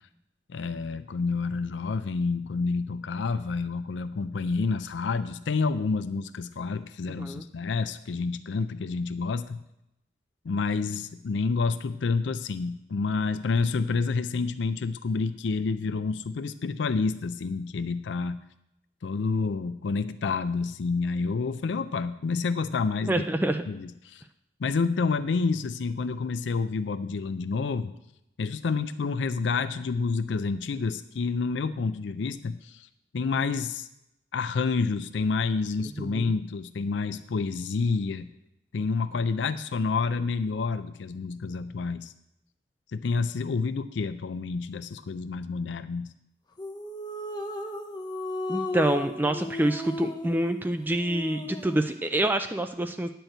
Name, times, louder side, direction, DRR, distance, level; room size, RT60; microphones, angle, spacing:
voice 1, 0.5-9.6 10.4-18.4 19.0-23.2 23.7-24.2 24.6-27.9 28.4-32.9 33.1-33.9 34.3-38.3 38.7-42.1 42.9-46.1, left 4 dB, 80° left, 11 dB, 0.4 m, -29 dB
voice 2, 23.1-23.6 36.0-36.3 48.5-53.1, right 1 dB, 10° right, 7 dB, 0.3 m, -27 dB
sound 1, 46.6-51.9, left 2 dB, 25° left, 0.7 m, -35 dB
10.5 x 4.5 x 7.8 m, 0.84 s
head